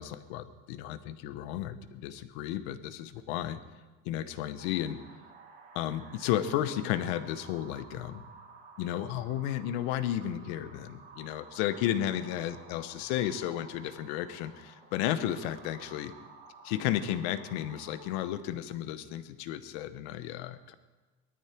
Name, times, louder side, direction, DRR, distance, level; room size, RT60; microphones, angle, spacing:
voice 1, 0.0-3.6 4.0-5.0 5.7-8.2 8.8-16.1 16.6-20.7, left 11 dB, 60° left, 13 dB, 0.9 m, -33 dB
sound 1, 4.6-18.3, right 4 dB, 25° right, 2.0 m, -53 dB
19.0 x 13.0 x 4.5 m, 1.2 s
cardioid pair, 175°, 37 cm